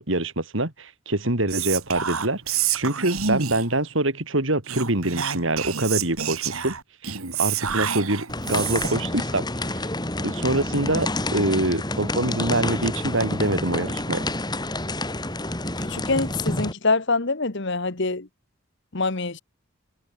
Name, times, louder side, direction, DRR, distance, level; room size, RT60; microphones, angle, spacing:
voice 1, 0.0-6.8 7.0-9.8 10.2-14.3, right 2 dB, 60° right, 3.4 m, -25 dB
Whispering, 1.5-3.8 4.6-9.1, right 8 dB, 85° right, 3.2 m, -28 dB
sound 1, 8.3-16.7, left 2 dB, 20° left, 3.9 m, -28 dB
voice 2, 15.8-18.3 18.9-19.4, left 3 dB, 55° left, 1.5 m, -25 dB
head